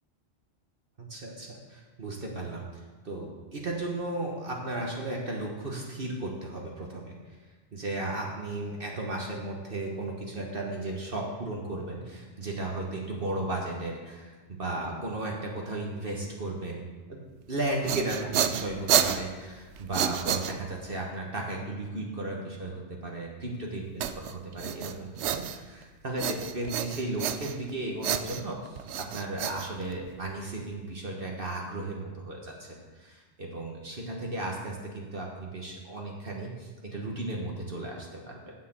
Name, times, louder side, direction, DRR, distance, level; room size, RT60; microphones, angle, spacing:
voice 1, 1.0-7.4 7.7-17.2 17.5-28.8 29.1-38.5, right 2 dB, 50° right, -1 dB, 1.5 m, -35 dB
sound 1, 17.6-21.0 24.0-25.8 26.2-27.7 28.0-30.3, right 9 dB, 75° right, 0.9 m, -30 dB
7.7 x 6.7 x 7.7 m, 1.3 s
omnidirectional pair, 1.2 m